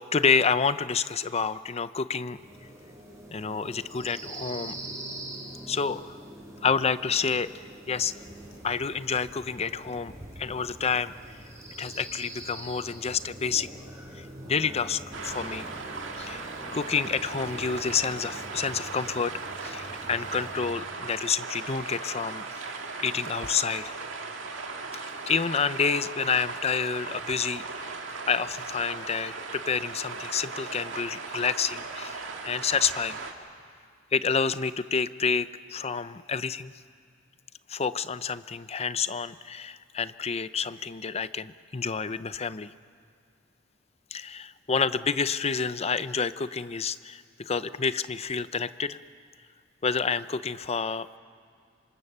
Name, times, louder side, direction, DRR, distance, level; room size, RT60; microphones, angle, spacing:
voice 1, 0.1-2.4 3.3-4.8 5.7-6.2 6.6-8.1 8.6-11.1 11.8-13.7 14.1-15.7 16.2-19.3 19.6-24.0 24.9-27.9 28.3-33.2 34.1-36.7 37.7-42.7 44.1-49.0 49.8-51.2, left 5 dB, 30° left, 14 dB, 0.6 m, -29 dB
sound 1, 2.3-20.7, right 1 dB, 15° right, 5.6 m, -44 dB
sound 2, 15.1-33.3, right 4 dB, 70° right, 2.1 m, -38 dB
27.0 x 25.0 x 6.8 m, 2.2 s
head